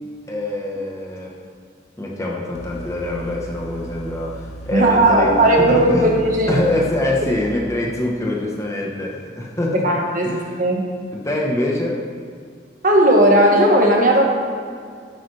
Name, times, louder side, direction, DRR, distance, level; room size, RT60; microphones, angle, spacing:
voice 1, 0.3-1.4 2.0-6.2 6.5-10.0 10.2-10.5 11.2-12.0, left 1 dB, 15° left, -2 dB, 1.1 m, -24 dB
sound 1, 2.5-7.5, right 1 dB, 35° left, 0.6 m, -37 dB
voice 2, 4.7-6.6 9.7-10.9 12.8-14.3, right 1 dB, 45° right, 0 dB, 1.5 m, -16 dB
11.5 x 8.7 x 3.4 m, 2.2 s
head